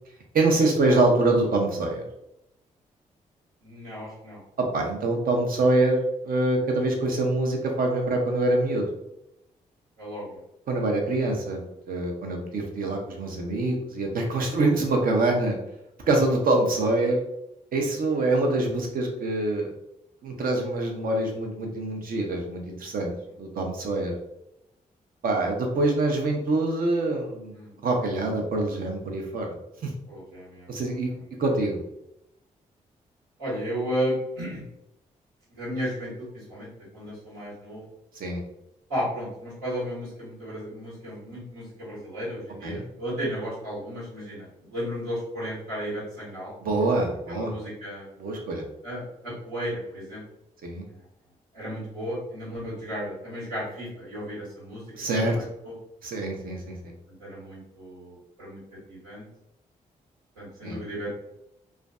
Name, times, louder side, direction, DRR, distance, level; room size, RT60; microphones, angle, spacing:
voice 1, 0.3-2.0 4.7-8.9 10.7-11.6 11.9-15.6 16.1-17.2 17.7-19.7 20.2-23.1 23.4-24.1 25.2-27.6 27.8-29.5 29.8-29.9 30.7-31.1 31.4-31.8 38.2-38.4 42.6-42.8 46.6-47.5 48.2-48.7 50.6-50.8 54.9-55.4 56.0-56.9 60.6-60.8, right 2 dB, 60° right, 1 dB, 0.6 m, -25 dB
voice 2, 3.6-4.4 10.0-10.4 14.5-14.7 27.5-27.7 30.1-30.7 33.4-34.6 35.5-37.8 38.9-46.5 46.9-48.1 48.8-50.2 51.5-55.7 57.2-58.6 58.9-59.3 60.4-61.1, equal, 85° right, -8 dB, 1.3 m, -34 dB
2.4 x 2.2 x 2.3 m, 0.83 s
hypercardioid pair, 40°, 17 cm